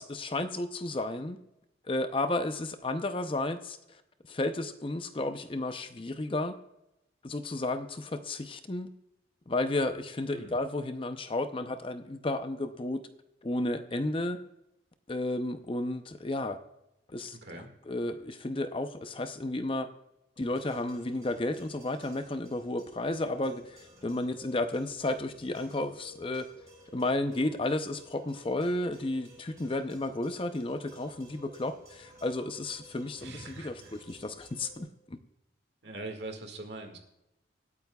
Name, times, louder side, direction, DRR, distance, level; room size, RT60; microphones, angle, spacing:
voice 1, 0.0-1.4 1.9-3.8 4.3-6.5 7.2-8.9 9.5-13.0 13.4-14.4 15.1-16.6 17.1-19.9 20.4-26.5 26.9-34.9, left 2 dB, 30° left, 9 dB, 0.6 m, -32 dB
voice 2, 17.3-17.7 33.2-33.9 35.8-37.0, right 2 dB, 65° right, 5 dB, 1.9 m, -42 dB
sound 1, 20.4-34.8, equal, 15° right, 5.1 m, -55 dB
25.5 x 8.8 x 2.3 m, 0.88 s
head